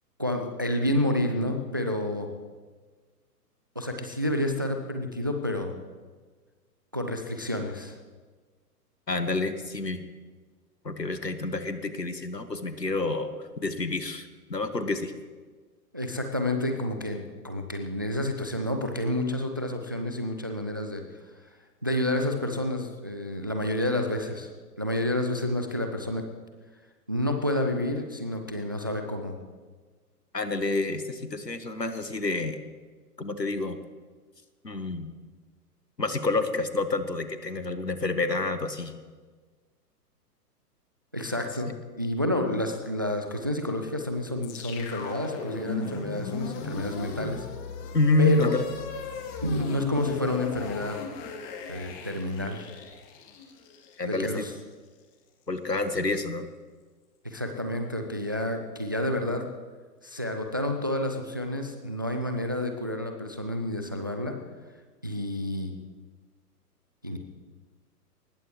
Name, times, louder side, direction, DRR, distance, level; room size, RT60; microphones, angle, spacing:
voice 1, 0.2-2.3 3.8-5.7 6.9-8.0 15.9-21.0 21.8-24.5 24.8-26.2 27.1-29.4 41.1-41.7 42.0-47.5 48.2-48.5 49.4-51.0 51.7-52.7 54.0-54.5 57.2-59.4 60.0-64.3 65.0-65.7 67.0-67.2, left 1 dB, 15° right, 5 dB, 0.4 m, -29 dB
voice 2, 9.1-10.1 10.8-15.1 30.3-32.6 33.2-33.8 34.6-35.1 36.0-39.0 47.9-48.6 54.0-54.5 55.5-56.5, left 2 dB, 90° left, 10 dB, 1.6 m, -28 dB
sound 1, 44.4-54.6, left 4 dB, 25° left, 2.1 m, -38 dB
22.5 x 19.5 x 3.2 m, 1.4 s
figure-of-eight pair, 115°, 48 cm